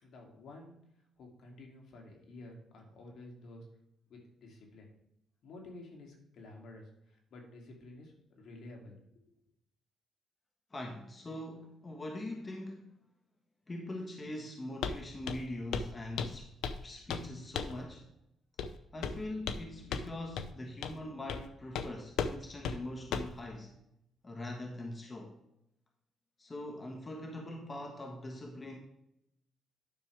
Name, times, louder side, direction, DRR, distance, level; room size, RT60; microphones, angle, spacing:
voice 1, 0.0-0.8 1.2-3.7 4.1-4.9 5.4-9.3, left 2 dB, 70° left, 2.6 m, -51 dB
voice 2, 10.7-12.9 13.7-16.5 16.8-18.1 18.9-23.8 24.2-25.4 26.4-28.8, left 1 dB, 25° left, 1.3 m, -42 dB
Walk footsteps, 14.8-15.0 15.3-15.5 15.7-15.9 16.2-16.8 17.1-17.3 17.6-17.8 18.6-18.7 19.0-19.6 19.9-20.1 20.4-20.5 20.8-21.0 21.3-21.5 21.7-21.9 22.2-22.4 22.6-22.8 23.1-23.4, left 6 dB, 85° left, 0.7 m, -35 dB
10.5 x 6.5 x 3.4 m
cardioid pair, 90°, 0 cm